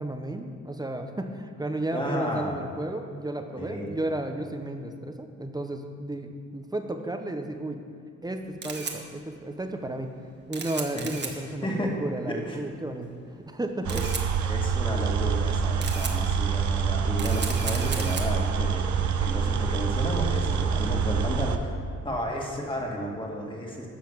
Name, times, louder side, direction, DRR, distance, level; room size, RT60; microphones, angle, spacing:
voice 1, 0.0-7.8 8.2-10.1 10.5-13.1 13.3-14.0, right 1 dB, 15° right, 5 dB, 0.9 m, -33 dB
voice 2, 1.9-2.6 3.6-3.9 10.9-11.1 11.6-12.0 12.3-12.6 13.8-14.0 14.4-21.8 22.0-23.9, equal, 15° left, -1 dB, 2.2 m, -32 dB
Camera, 8.2-21.6, right 4 dB, 35° right, 1.4 m, -39 dB
sound 1, 13.8-21.6, right 6 dB, 65° right, 0.8 m, -26 dB
10.5 x 5.8 x 7.3 m, 2.2 s
cardioid pair, 90°, 30 cm